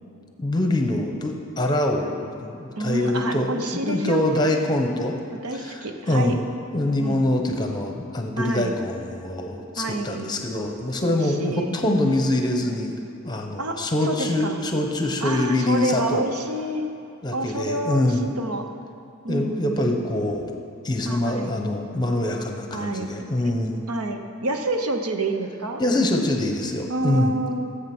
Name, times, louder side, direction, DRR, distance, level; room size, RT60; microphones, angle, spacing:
voice 1, 0.4-5.2 5.5-6.4 6.7-12.9 13.2-16.2 17.2-18.3 19.3-23.8 25.8-27.4, left 1 dB, 20° left, 3 dB, 1.0 m, -24 dB
voice 2, 2.8-4.5 5.3-6.4 7.0-7.2 8.4-8.7 9.8-10.4 11.1-11.8 13.6-14.6 15.2-16.9 17.3-18.6 19.2-20.1 21.0-21.6 22.7-23.1 23.9-25.8 26.9-27.6, right 2 dB, 85° right, 5 dB, 1.0 m, -28 dB
14.5 x 8.1 x 6.2 m, 2.6 s
head